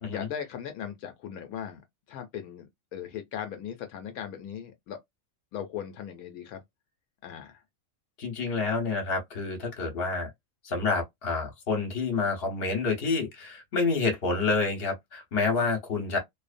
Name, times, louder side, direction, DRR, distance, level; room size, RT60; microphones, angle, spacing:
voice 1, 0.1-1.8 2.1-2.7 2.9-5.0 5.5-6.6 7.2-7.5, left 9 dB, 80° left, 1.1 m, -38 dB
voice 2, 8.2-10.3 10.6-16.2, left 4 dB, 45° left, 1.1 m, -28 dB
2.7 x 2.0 x 2.4 m
omnidirectional pair, 1.5 m